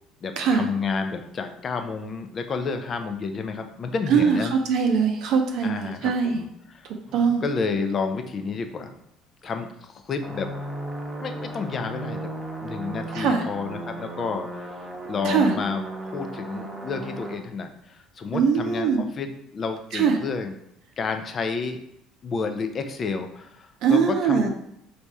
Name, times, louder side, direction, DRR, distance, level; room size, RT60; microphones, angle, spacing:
voice 1, 0.2-4.5 5.6-8.9 9.4-10.5 11.2-12.3 12.6-20.5 21.0-21.8 22.2-24.5, left 4 dB, 35° left, 6 dB, 0.5 m, -30 dB
voice 2, 4.1-6.4 7.1-7.4 13.1-13.4 15.2-15.5 18.3-19.0 19.9-20.2 23.8-24.5, right 6 dB, 70° right, 3 dB, 0.6 m, -21 dB
sound 1, 10.2-17.4, right 1 dB, 15° right, 0.9 m, -35 dB
3.3 x 2.7 x 4.6 m, 0.76 s
cardioid pair, 115°, 0 cm